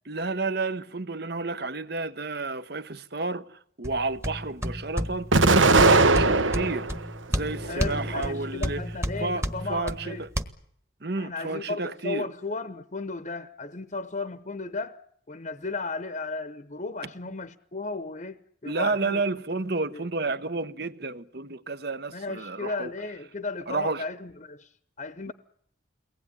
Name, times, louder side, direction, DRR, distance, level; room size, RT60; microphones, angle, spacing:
voice 1, 0.1-8.9 9.2-10.3 11.0-12.3 18.6-22.9 23.7-24.0 25.3-25.4, right 3 dB, 55° right, 1.1 m, -31 dB
sound 1, 3.8-10.4, equal, 15° right, 1.3 m, -32 dB
Explosion, 5.3-7.0 7.5-8.4, right 3 dB, 80° right, 1.3 m, -20 dB
voice 2, 7.6-10.2 11.2-15.0 15.3-19.2 19.9-20.1 22.1-24.7 25.0-25.3, left 3 dB, 40° left, 0.9 m, -35 dB
23.5 x 19.0 x 9.9 m
head